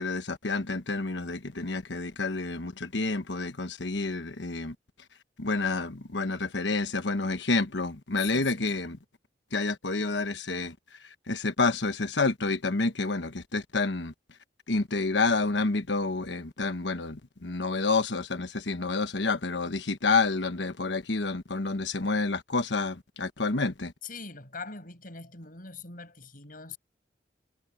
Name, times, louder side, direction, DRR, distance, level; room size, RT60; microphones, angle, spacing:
voice 1, 0.0-4.7 5.4-9.0 9.5-10.7 11.3-14.1 14.7-23.9, left 3 dB, 80° left, 1.2 m, -29 dB
voice 2, 8.2-8.7 24.0-26.8, left 4 dB, 50° left, 7.2 m, -42 dB
head